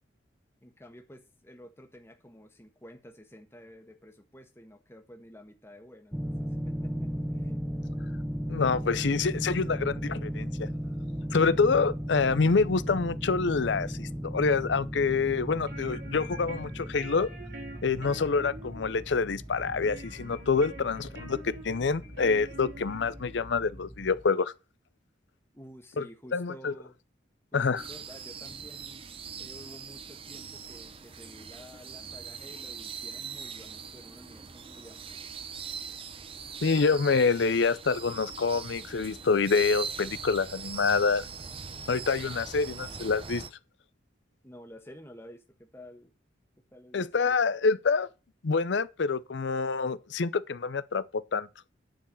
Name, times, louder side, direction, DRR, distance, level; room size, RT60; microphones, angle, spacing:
voice 1, 0.6-7.6 25.5-26.9 27.5-29.0 29.4-35.2 44.4-46.1 46.7-47.4, equal, 15° left, 1.3 m, -51 dB
sound 1, 6.1-24.2, equal, 5° right, 1.0 m, -36 dB
voice 2, 8.5-10.7 11.3-17.3 17.8-24.5 26.0-26.1 26.3-26.7 27.5-27.8 36.6-41.3 41.9-43.4 46.9-48.1 48.4-51.0 51.3-51.5, left 4 dB, 70° left, 0.6 m, -26 dB
sound 2, 15.4-23.5, right 1 dB, 60° right, 3.1 m, -46 dB
sound 3, 27.8-43.5, right 6 dB, 30° right, 0.7 m, -41 dB
10.5 x 4.6 x 7.6 m
head